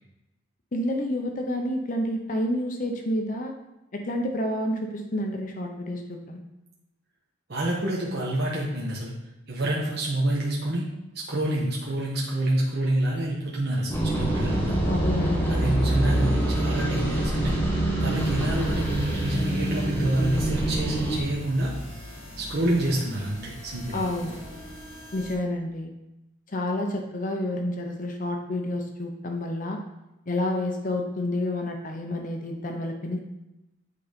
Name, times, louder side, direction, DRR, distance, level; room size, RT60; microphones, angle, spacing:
voice 1, 0.7-3.5 3.9-6.4 14.8-16.0 23.9-24.3 25.1-25.9 26.5-29.8 30.3-33.2, left 1 dB, 40° left, 3 dB, 0.7 m, -29 dB
voice 2, 7.5-9.1 9.5-10.8 11.1-14.7 15.5-17.5 18.0-21.7 22.4-24.0, right 1 dB, 55° right, -4 dB, 1.1 m, -27 dB
sound 1, 13.9-21.2, right 1 dB, 10° left, 1.3 m, -25 dB
sound 2, 18.1-25.4, equal, 65° left, 2.6 m, -41 dB
8.4 x 3.9 x 5.1 m, 0.96 s
head